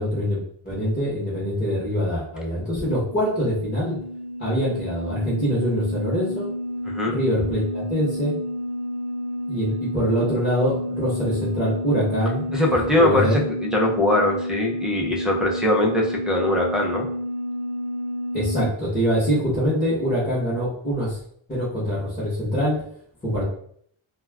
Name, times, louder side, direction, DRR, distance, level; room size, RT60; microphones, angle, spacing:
voice 1, 0.0-4.0 4.4-6.5 7.1-8.3 9.5-12.5 13.0-13.4 18.3-21.2 21.5-22.8 23.2-23.4, equal, 20° left, -10 dB, 0.9 m, -24 dB
sound 1, 2.5-18.6, left 1 dB, 85° right, 0.7 m, -30 dB
voice 2, 6.9-7.2 12.5-17.1, left 1 dB, ahead, -3 dB, 0.3 m, -22 dB
2.3 x 2.1 x 3.3 m, 0.64 s
wide cardioid pair, 145°, 49 cm